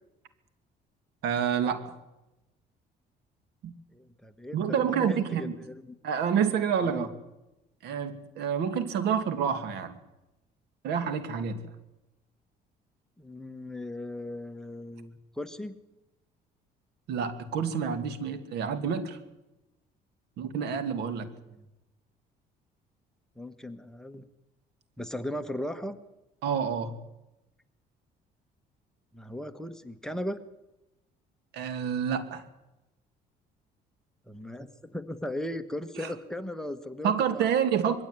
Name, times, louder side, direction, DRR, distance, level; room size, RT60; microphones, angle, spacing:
voice 1, 1.2-1.9 3.6-3.7 4.5-5.5 6.0-7.1 7.8-10.0 10.8-11.7 17.1-19.2 20.4-21.3 26.4-26.9 31.5-32.4 36.0-36.2 37.0-38.0, right 7 dB, 80° right, 11 dB, 2.3 m, -28 dB
voice 2, 3.9-5.9 6.8-7.1 13.2-15.8 21.4-21.7 23.4-24.2 25.0-26.0 29.1-30.4 34.3-37.4, left 1 dB, 5° left, 7 dB, 1.4 m, -37 dB
22.0 x 16.0 x 9.6 m, 0.96 s
cardioid pair, 110°, 17 cm